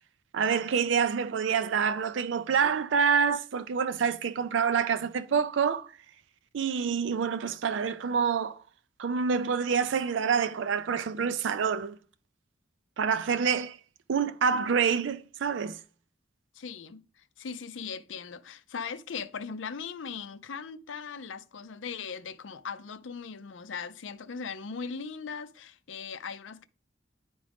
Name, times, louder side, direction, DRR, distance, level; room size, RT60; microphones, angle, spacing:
voice 1, 0.3-5.9 6.5-8.6 9.0-12.0 13.0-13.8 14.1-15.8, right 6 dB, 70° right, 0.4 m, -27 dB
voice 2, 16.5-26.7, left 5 dB, 80° left, 0.5 m, -39 dB
10.0 x 3.7 x 3.5 m
head